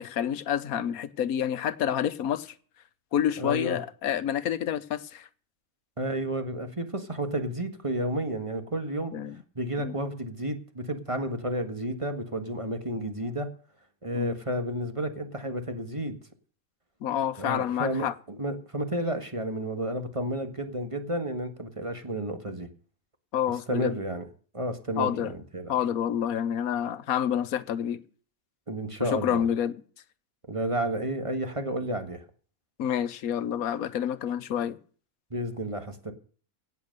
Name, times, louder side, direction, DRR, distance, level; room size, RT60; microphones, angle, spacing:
voice 1, 0.0-2.5 3.1-5.3 9.1-9.4 9.8-10.0 14.1-14.3 17.0-18.1 23.3-24.0 25.0-25.3 25.7-28.0 29.0-29.8 32.8-34.8, left 9 dB, 90° left, 1.3 m, -28 dB
voice 2, 3.4-3.8 6.0-9.1 9.5-13.5 14.0-16.2 17.4-22.7 23.7-24.3 24.5-25.7 28.7-29.5 30.5-32.2 35.3-36.1, right 1 dB, 25° right, 1.7 m, -31 dB
17.0 x 7.2 x 6.6 m
omnidirectional pair, 1.5 m